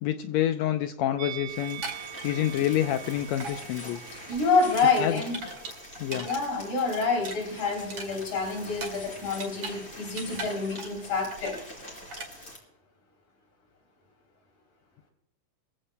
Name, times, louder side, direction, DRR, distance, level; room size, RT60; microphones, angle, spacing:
voice 1, 0.0-1.8 2.2-4.0 5.0-5.2 6.0-6.3, left 12 dB, 90° left, 8 dB, 1.5 m, -27 dB
Musical instrument, 1.2-6.4 6.7-6.9, right 12 dB, 65° right, 2.7 m, -44 dB
sound 1, 1.5-12.6, left 1 dB, 20° left, 4.2 m, -45 dB
sound 2, 1.6-3.1 3.4-3.6 3.9-6.4 6.7-9.8 10.0-11.1 11.3-11.7 12.1-12.3, right 3 dB, 40° right, 2.8 m, -40 dB
voice 2, 4.3-5.4 6.2-11.6, left 4 dB, 65° left, 2 dB, 4.7 m, -27 dB
22.5 x 15.5 x 2.2 m, 0.84 s
omnidirectional pair, 3.8 m